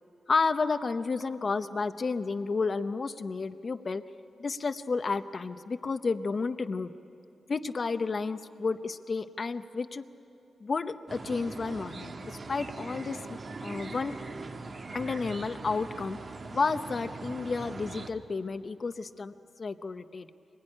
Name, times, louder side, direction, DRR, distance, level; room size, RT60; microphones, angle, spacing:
voice 1, 0.3-4.0 4.4-6.9 7.5-10.0 10.6-14.1 14.9-16.2 16.5-20.3, left 4 dB, 50° left, 10 dB, 0.8 m, -31 dB
sound 1, 11.1-18.1, right 3 dB, 55° right, 1.8 m, -41 dB
25.0 x 21.0 x 9.9 m, 2.7 s
cardioid pair, 65°, 0 cm